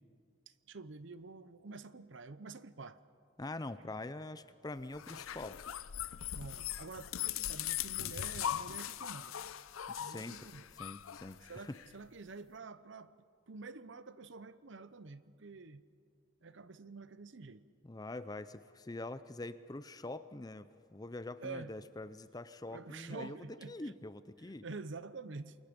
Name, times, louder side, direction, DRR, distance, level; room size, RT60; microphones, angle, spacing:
voice 1, 0.7-3.0 6.3-9.4 10.0-10.6 11.5-13.2 13.5-15.8 16.4-17.7 21.4-21.7 22.7-23.9 24.6-25.6, right 3 dB, 60° right, 15 dB, 0.8 m, -48 dB
voice 2, 3.4-5.6 9.9-10.5 10.8-11.8 17.8-23.4 23.7-24.6, left 2 dB, 20° left, 13 dB, 0.5 m, -44 dB
sound 1, 4.9-11.9, left 10 dB, 90° left, 0.6 m, -40 dB
28.0 x 22.5 x 5.2 m, 2.2 s
head